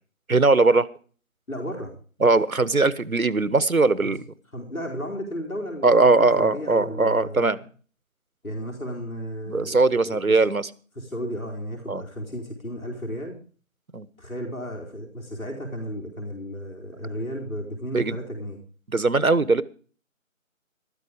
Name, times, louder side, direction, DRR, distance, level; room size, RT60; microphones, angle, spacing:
voice 1, 0.3-0.9 2.2-4.2 5.8-7.6 9.5-10.7 11.9-12.0 13.9-14.1 17.9-18.2 18.9-19.6, right 3 dB, 85° right, 18 dB, 1.2 m, -20 dB
voice 2, 1.5-1.9 4.0-4.1 4.5-7.6 8.4-10.4 11.0-13.4 14.2-18.6, equal, 85° left, 1 dB, 4.7 m, -34 dB
13.5 x 13.0 x 5.0 m, 0.42 s
figure-of-eight pair, 170°, 41 cm